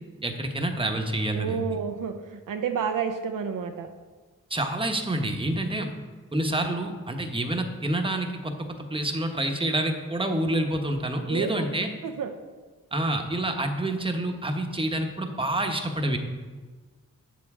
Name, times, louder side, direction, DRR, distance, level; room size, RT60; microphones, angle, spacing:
voice 1, 0.2-1.6 4.5-5.9 6.3-11.9 12.9-16.2, right 1 dB, 15° right, 4 dB, 1.0 m, -28 dB
voice 2, 1.3-3.9 11.3-11.5 12.0-12.3, right 6 dB, 75° right, 6 dB, 0.6 m, -30 dB
7.5 x 7.0 x 3.6 m, 1.4 s
cardioid pair, 45°, 32 cm